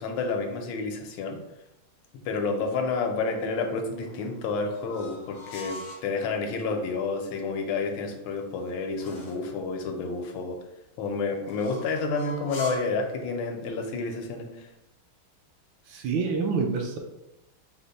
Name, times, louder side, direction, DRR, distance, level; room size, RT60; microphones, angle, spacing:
voice 1, 0.0-1.4 2.2-10.6 11.0-14.7, left 4 dB, 80° left, 3 dB, 1.4 m, -30 dB
sound 1, 3.9-6.1 8.1-9.5 11.4-13.0, left 1 dB, 60° left, 0.9 m, -42 dB
voice 2, 15.9-17.0, right 5 dB, 75° right, 2 dB, 1.2 m, -27 dB
5.0 x 2.1 x 3.9 m, 0.92 s
omnidirectional pair, 2.3 m